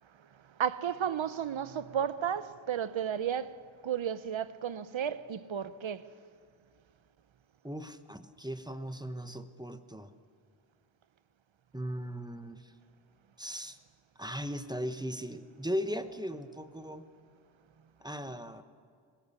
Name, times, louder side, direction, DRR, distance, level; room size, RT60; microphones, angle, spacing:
voice 1, 0.2-3.6 3.8-6.1, right 8 dB, 65° right, 0.9 m, -33 dB
voice 2, 7.6-10.1 11.7-12.7 13.4-13.8 14.2-17.1 18.0-18.6, equal, 10° right, 1.0 m, -38 dB
20.0 x 17.5 x 8.3 m
wide cardioid pair, 80°, 50 cm